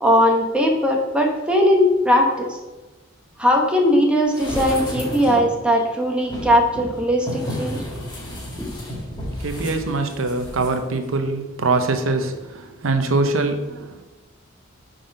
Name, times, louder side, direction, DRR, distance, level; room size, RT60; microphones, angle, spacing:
voice 1, 0.0-2.5 3.4-7.8 8.6-8.7, equal, 5° right, 1 dB, 1.0 m, -19 dB
sound 1, 4.3-5.6 6.2-10.7 11.0-11.1, equal, 20° left, 1.9 m, -31 dB
voice 2, 9.4-14.0, right 3 dB, 75° right, 6 dB, 0.7 m, -23 dB
7.6 x 4.0 x 5.2 m, 1.1 s
head